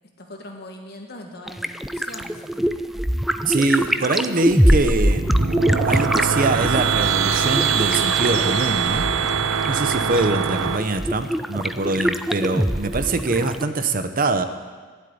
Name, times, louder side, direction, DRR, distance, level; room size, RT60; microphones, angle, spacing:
voice 1, 0.2-2.4, left 1 dB, 55° left, 2 dB, 1.8 m, -40 dB
sound 1, 1.5-13.6, equal, ahead, 0.4 m, -23 dB
voice 2, 3.5-5.3 5.8-9.1 9.7-14.4, right 3 dB, 45° right, 9 dB, 0.8 m, -23 dB
sound 2, 5.0-10.8, right 6 dB, 90° right, 0.8 m, -22 dB
sound 3, 6.1-8.7 9.9-10.4, left 5 dB, 80° left, 1.6 m, -37 dB
12.0 x 7.8 x 9.6 m, 1.5 s
head